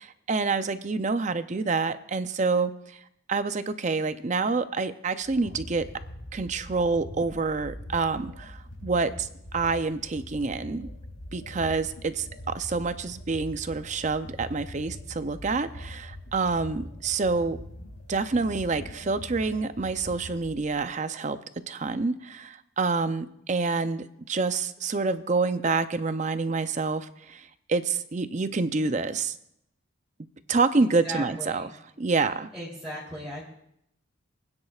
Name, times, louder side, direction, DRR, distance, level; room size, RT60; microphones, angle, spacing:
voice 1, 0.0-3.0 3.3-5.9 6.3-10.9 11.3-17.6 18.1-21.4 21.7-29.3 30.5-31.7 32.0-32.5, right 4 dB, 35° right, 11 dB, 0.5 m, -27 dB
sound 1, 5.2-20.9, equal, 85° left, 3.4 m, -43 dB
voice 2, 31.0-31.7 32.5-33.4, right 1 dB, 5° right, -9 dB, 3.1 m, -36 dB
24.5 x 9.7 x 2.4 m, 0.75 s
head